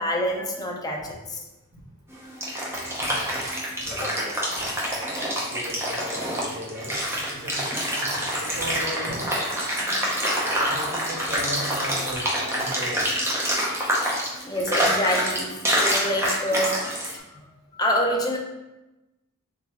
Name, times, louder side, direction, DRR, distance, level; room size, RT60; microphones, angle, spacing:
voice 1, 0.0-1.4 3.9-4.1 14.4-16.8 17.1-17.2 17.7-18.4, equal, 15° left, -1 dB, 0.6 m, -26 dB
sound 1, 2.1-17.1, equal, 10° right, 0.8 m, -26 dB
voice 2, 3.0-3.4 3.8-4.8 5.3-8.1 8.4-9.3 9.9-10.0 10.6-12.3 12.5-13.2, equal, 45° right, -4 dB, 1.2 m, -37 dB
3.9 x 3.8 x 3.0 m, 1.0 s
head